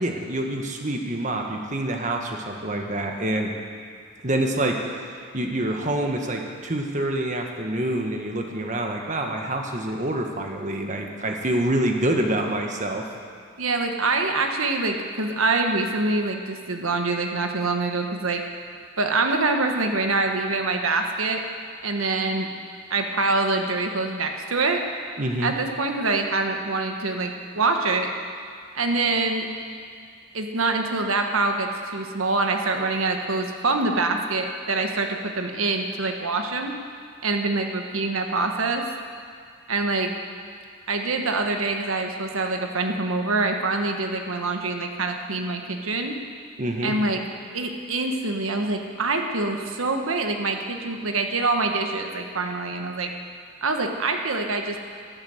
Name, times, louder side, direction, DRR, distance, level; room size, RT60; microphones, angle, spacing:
voice 1, 0.0-3.5 4.2-5.1 5.3-13.1 25.2-25.5 46.6-46.9, right 1 dB, 35° right, 2 dB, 1.4 m, -26 dB
voice 2, 13.6-18.4 19.0-21.4 21.8-22.5 22.9-24.8 25.4-28.1 28.7-29.5 30.3-36.7 37.2-38.9 39.7-40.1 40.9-46.2 46.8-47.2 47.5-53.1 53.6-54.8, right 3 dB, 90° right, 4 dB, 1.3 m, -25 dB
12.0 x 11.0 x 7.9 m, 2.2 s
head